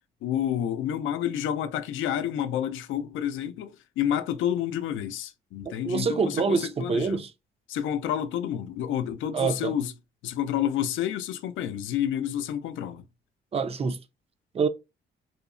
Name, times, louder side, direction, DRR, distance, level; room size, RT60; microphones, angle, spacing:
voice 1, 0.2-7.2 7.7-9.9 10.2-13.0, left 10 dB, 80° left, 0.4 m, -29 dB
voice 2, 5.8-7.3 9.3-9.8 13.5-14.0 14.5-14.7, right 5 dB, 30° right, 0.4 m, -26 dB
2.8 x 2.0 x 2.5 m
cardioid pair, 90°, 20 cm